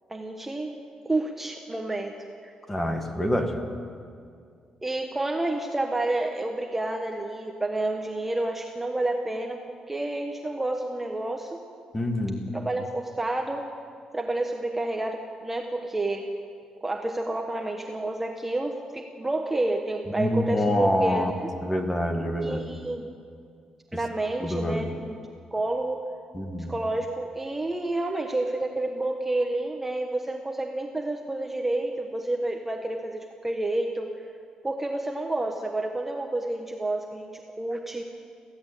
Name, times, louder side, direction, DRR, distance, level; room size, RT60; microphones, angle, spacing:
voice 1, 0.1-2.5 4.8-9.6 9.9-11.6 12.5-13.7 14.1-16.3 16.8-21.5 22.4-23.1 23.9-25.2 25.5-26.1 26.7-34.2 34.6-38.0, right 2 dB, 10° right, 2 dB, 1.1 m, -29 dB
voice 2, 2.7-3.6 11.9-12.4 20.1-21.3 21.6-22.7 24.4-24.9 26.3-26.7, left 1 dB, 15° left, 5 dB, 1.8 m, -26 dB
23.5 x 16.0 x 8.3 m, 2.3 s
wide cardioid pair, 165°, 2 cm